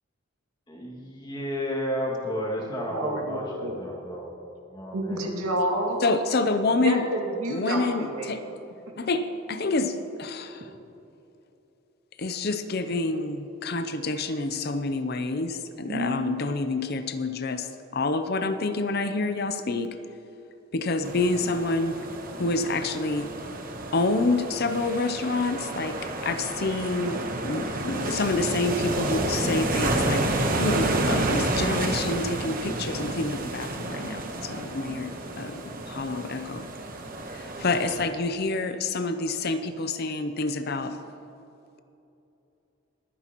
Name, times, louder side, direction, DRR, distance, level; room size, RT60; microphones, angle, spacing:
voice 1, 0.7-4.3 4.7-5.3, equal, 20° left, -2 dB, 2.1 m, -32 dB
voice 2, 2.9-3.8 4.9-6.0 6.8-8.3 9.0-9.1 15.9-16.3, right 1 dB, 85° right, 0 dB, 2.3 m, -29 dB
voice 3, 6.0-7.0 7.5-8.4 9.0-10.7 12.2-20.0 20.7-22.0 22.4-23.3 23.9-26.0 26.2-36.6 37.3-41.0, left 3 dB, 45° left, 9 dB, 0.6 m, -28 dB
sound 1, 21.0-38.1, right 2 dB, 40° right, 1.1 m, -30 dB
23.0 x 10.0 x 3.0 m, 2.8 s
head